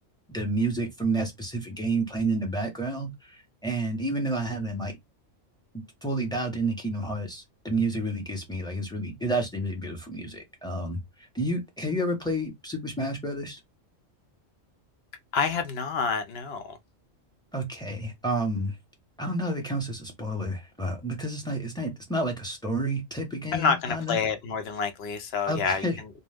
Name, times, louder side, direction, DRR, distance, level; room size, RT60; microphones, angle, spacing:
voice 1, 0.3-5.0 5.7-13.6 17.5-18.7 19.2-24.2 25.5-26.0, right 1 dB, 5° left, 0.6 m, -30 dB
voice 2, 15.3-16.8 23.5-26.1, left 5 dB, 60° left, 0.8 m, -28 dB
2.5 x 2.3 x 3.3 m
omnidirectional pair, 1.3 m